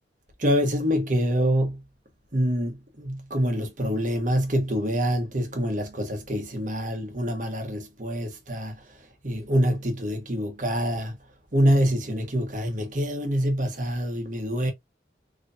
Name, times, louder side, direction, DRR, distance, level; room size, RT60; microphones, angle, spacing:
voice 1, 0.4-1.8 2.3-11.2 11.5-14.7, equal, 45° right, 1.2 m, -26 dB
4.0 x 3.1 x 2.4 m
head